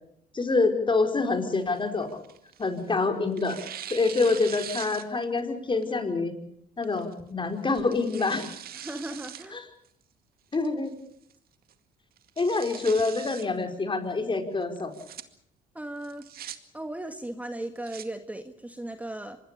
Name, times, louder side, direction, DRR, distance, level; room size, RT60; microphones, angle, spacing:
voice 1, 0.3-2.2 2.6-3.6 3.9-6.3 6.8-8.4 9.5-9.6 10.5-10.9 12.4-14.9, left 3 dB, 30° left, 6 dB, 4.8 m, -26 dB
Tearing, 1.6-2.9 3.4-5.4 5.8-5.9 6.8-7.1 7.7-9.5 9.8-9.9 10.5-10.9 11.3-11.4 11.7-11.8 12.2-13.5 14.8-15.2 16.0-16.6 17.6-18.1, right 10 dB, 60° right, 2.2 m, -42 dB
voice 2, 8.8-9.6 15.7-16.3 16.7-19.4, right 1 dB, 10° right, 7 dB, 1.9 m, -37 dB
25.5 x 20.5 x 6.9 m, 0.71 s
supercardioid pair, 70°, 17 cm